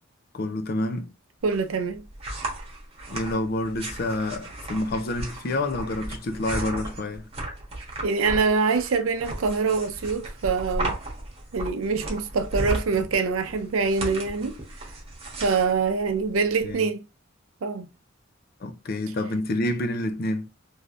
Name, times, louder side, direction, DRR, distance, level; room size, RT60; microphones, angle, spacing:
voice 1, 0.3-1.1 3.1-7.2 16.6-16.9 18.6-20.5, left 1 dB, 50° left, 0.5 m, -28 dB
sound 1, 1.4-16.7, right 2 dB, 30° right, 1.1 m, -35 dB
voice 2, 1.4-2.0 8.0-11.0 11.5-14.6 15.4-17.0 17.6-17.9, right 4 dB, 80° right, 0.5 m, -24 dB
3.3 x 2.6 x 2.5 m
head